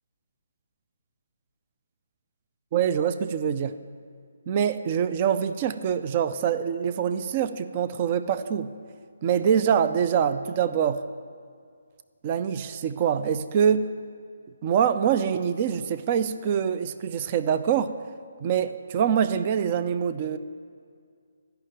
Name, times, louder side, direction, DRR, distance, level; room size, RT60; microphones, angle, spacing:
voice 1, 2.7-3.7 4.5-8.7 9.2-11.0 12.2-13.9 14.6-17.9 18.4-20.4, right 8 dB, 30° right, 11 dB, 0.4 m, -24 dB
12.5 x 5.7 x 8.8 m, 2.1 s
hypercardioid pair, 165°, 0 cm